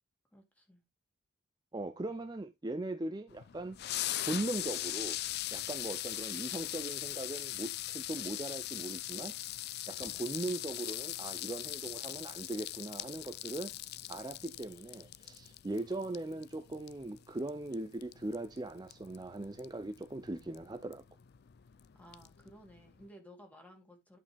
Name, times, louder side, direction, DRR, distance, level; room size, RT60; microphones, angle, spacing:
voice 1, 0.3-0.8 21.9-24.2, equal, 5° left, 2.3 m, -56 dB
voice 2, 1.7-3.8 4.2-5.2 5.5-9.4 9.9-13.7 14.1-21.0, right 2 dB, 20° right, 0.5 m, -39 dB
sound 1, 3.3-23.1, left 14 dB, 50° left, 0.4 m, -41 dB
10.5 x 5.3 x 3.4 m
head